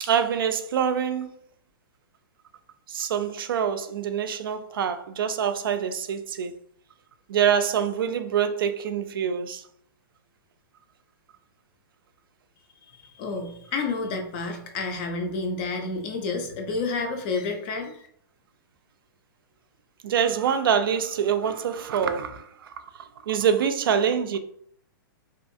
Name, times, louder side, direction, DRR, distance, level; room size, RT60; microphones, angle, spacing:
voice 1, 0.0-1.3 2.9-6.5 7.3-9.6 20.0-22.7 23.2-24.4, right 8 dB, 75° right, 0.4 m, -25 dB
voice 2, 12.9-18.0, left 3 dB, 25° left, 0.4 m, -30 dB
2.6 x 2.3 x 2.6 m
hypercardioid pair, 165°, 12 cm